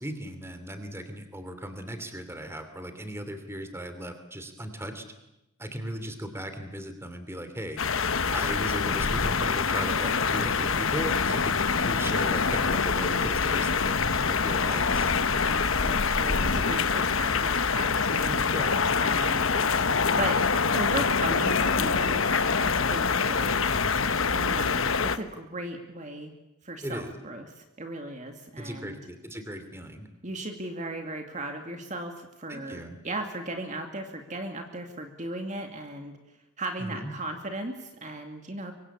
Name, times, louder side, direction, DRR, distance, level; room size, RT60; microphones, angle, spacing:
voice 1, 0.0-5.0 5.6-7.8 8.3-15.1 18.3-18.9 23.7-24.1 26.8-27.2 28.6-30.1 32.5-33.0 36.8-37.1, equal, 10° right, 9 dB, 2.9 m, -37 dB
sound 1, 7.8-25.2, left 5 dB, 70° left, 1.2 m, -25 dB
voice 2, 15.4-18.4 19.0-19.5 20.2-20.4 20.7-22.4 22.9-23.5 24.3-26.3 26.6-29.0 30.2-36.2 36.6-38.7, right 2 dB, 35° right, 4 dB, 2.4 m, -36 dB
25.0 x 24.0 x 8.5 m, 0.92 s
head